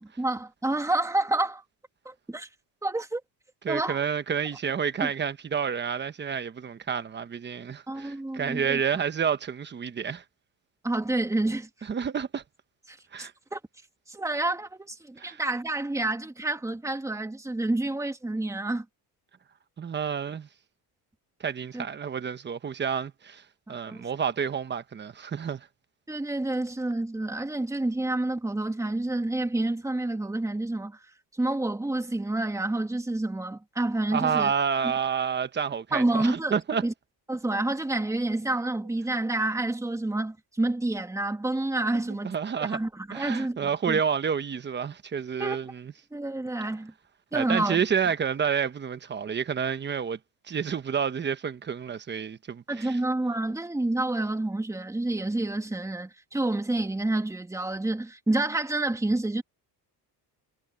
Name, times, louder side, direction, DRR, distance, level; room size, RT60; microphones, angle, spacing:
voice 1, 0.0-1.6 2.0-2.5 2.8-3.2 3.7-4.0 5.0-5.1 7.9-8.8 10.8-11.7 12.9-13.6 14.1-18.8 21.7-21.8 23.7-24.0 26.1-31.0 31.4-34.5 35.9-36.9 37.3-42.3 42.7-44.0 45.4-45.6 46.1-46.9 47.3-47.8 52.7-59.4, right 2 dB, 10° right, 2.5 m, -29 dB
voice 2, 3.6-10.2 11.8-12.4 13.1-13.3 15.2-15.4 19.8-20.5 21.4-23.4 23.7-25.7 34.1-36.9 41.9-42.8 43.1-45.9 47.3-50.2 50.5-53.0, right 7 dB, 25° right, 1.1 m, -29 dB
cardioid pair, 150°, 40 cm